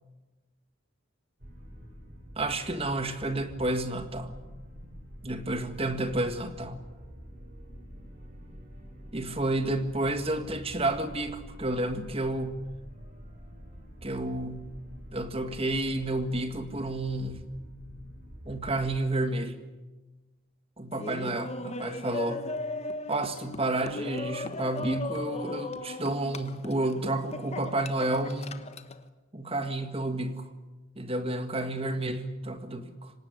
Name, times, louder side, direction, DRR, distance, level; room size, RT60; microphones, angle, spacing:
sound 1, 1.4-19.0, equal, 45° right, 6.7 m, -47 dB
voice 1, 2.4-4.3 5.2-6.8 9.1-12.6 14.0-14.7 15.1-17.5 18.5-19.6 20.8-22.4 23.1-28.7 29.3-30.5 31.0-33.1, right 2 dB, 30° right, 9 dB, 1.8 m, -30 dB
Laughter, 20.9-29.0, left 2 dB, 30° left, 1.2 m, -37 dB
25.5 x 18.5 x 9.9 m, 1.2 s
head